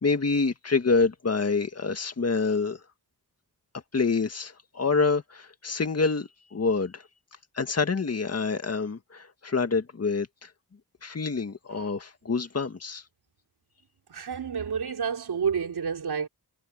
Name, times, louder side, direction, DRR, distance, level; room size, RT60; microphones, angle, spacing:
voice 1, 0.0-2.8 3.9-7.0 7.6-10.5 11.0-13.0, left 4 dB, 40° left, 2.0 m, -27 dB
voice 2, 14.1-16.3, right 6 dB, 75° right, 4.0 m, -29 dB
wide cardioid pair, 110°, 39 cm